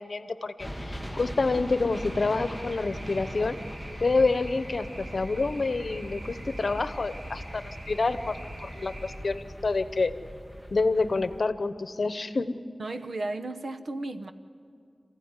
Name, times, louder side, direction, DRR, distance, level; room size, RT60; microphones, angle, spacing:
voice 1, 0.0-3.6 4.0-10.1 10.7-12.6, left 3 dB, 70° left, 11 dB, 0.9 m, -28 dB
sound 1, 0.6-11.4, equal, 5° right, 1.1 m, -40 dB
sound 2, 1.9-9.2, right 1 dB, 55° right, 5.0 m, -45 dB
voice 2, 12.8-14.3, right 2 dB, 80° right, 7 dB, 1.1 m, -34 dB
27.5 x 15.5 x 9.8 m, 2.3 s
wide cardioid pair, 85°, 0 cm